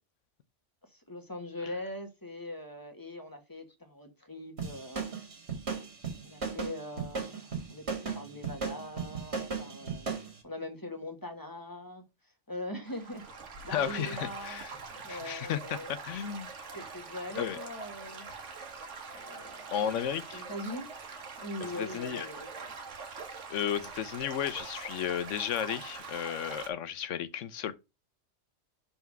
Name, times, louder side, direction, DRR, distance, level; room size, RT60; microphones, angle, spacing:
voice 1, 0.9-5.0 6.2-10.1 10.4-13.2 13.6-14.6 15.0-15.9 16.7-18.3 19.2-19.7 20.3-20.9 21.4-22.7, left 1 dB, 15° left, 1.3 m, -42 dB
sound 1, 4.6-10.3, right 5 dB, 60° right, 2.1 m, -36 dB
Stream / Gurgling / Trickle dribble, 12.9-26.7, right 4 dB, 80° right, 1.6 m, -44 dB
voice 2, 13.7-14.7 15.1-16.5 17.4-17.6 19.7-20.5 21.6-22.3 23.5-27.7, left 9 dB, 85° left, 1.1 m, -33 dB
5.7 x 4.2 x 5.9 m
omnidirectional pair, 1.2 m